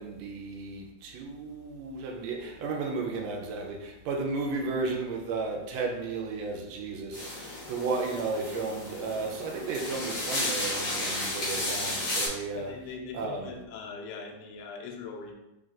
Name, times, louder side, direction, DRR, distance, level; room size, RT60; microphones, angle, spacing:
voice 1, 0.0-12.7 13.1-13.5, right 3 dB, 80° right, 1 dB, 1.7 m, -34 dB
sound 1, 7.1-12.3, left 1 dB, 40° left, 1.8 m, -33 dB
voice 2, 12.5-15.3, left 4 dB, 75° left, 1 dB, 1.5 m, -41 dB
4.6 x 4.0 x 2.4 m, 0.95 s
omnidirectional pair, 3.4 m